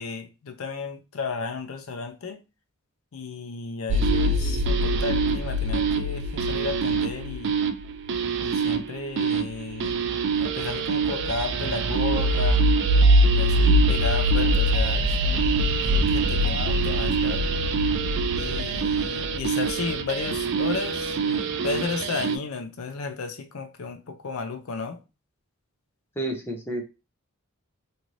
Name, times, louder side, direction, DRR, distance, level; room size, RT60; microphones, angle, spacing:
voice 1, 0.0-2.4 3.1-7.6 8.4-10.0 10.3-12.6 12.9-17.5 18.3-25.0, left 4 dB, 70° left, 0.5 m, -33 dB
sound 1, 3.9-22.4, right 2 dB, 55° right, 0.3 m, -23 dB
voice 2, 26.2-26.8, right 1 dB, 10° left, 0.5 m, -31 dB
2.7 x 2.5 x 3.0 m
head